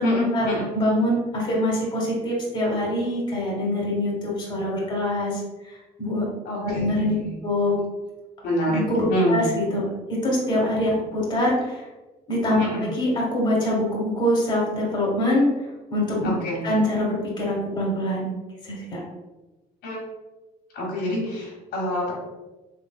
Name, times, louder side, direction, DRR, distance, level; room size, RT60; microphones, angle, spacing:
voice 1, 0.0-0.7 6.4-7.4 8.4-8.8 9.1-9.5 12.6-12.8 16.2-16.6 19.8-20.0 20.7-22.1, equal, 80° left, -3 dB, 1.4 m, -26 dB
voice 2, 0.7-6.3 6.6-7.1 7.4-7.8 8.7-11.9 12.3-12.6 13.0-15.5 15.9-16.3 16.6-18.3 18.6-19.0, left 1 dB, 25° left, -4 dB, 1.3 m, -24 dB
3.8 x 3.1 x 2.3 m, 1.1 s
cardioid pair, 110°, 17 cm